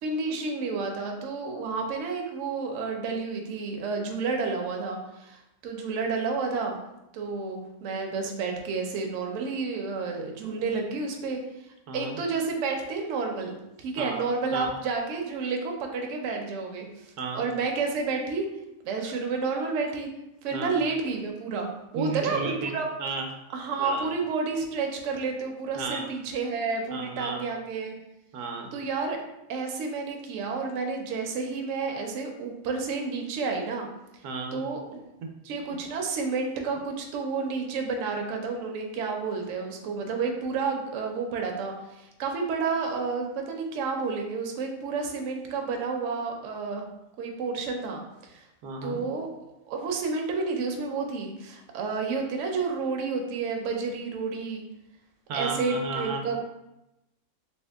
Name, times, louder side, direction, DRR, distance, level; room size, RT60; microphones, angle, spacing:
voice 1, 0.0-6.8 7.1-11.4 11.9-18.5 18.8-20.1 20.4-22.9 23.5-27.9 28.7-29.2 29.5-33.9 34.5-35.0 35.4-46.9 47.2-48.4 48.8-49.3 49.7-54.6 55.3-56.4, right 4 dB, 65° right, 2 dB, 0.8 m, -30 dB
voice 2, 11.9-12.2 14.0-14.2 14.5-14.7 17.2-17.4 19.0-19.1 20.5-20.8 21.9-22.7 23.0-23.3 23.8-24.1 25.8-26.1 26.9-27.4 28.3-28.7 34.2-34.6 48.6-49.0 55.3-56.2, right 3 dB, 85° right, 3 dB, 1.1 m, -33 dB
2.8 x 2.7 x 3.3 m, 0.89 s
omnidirectional pair, 1.6 m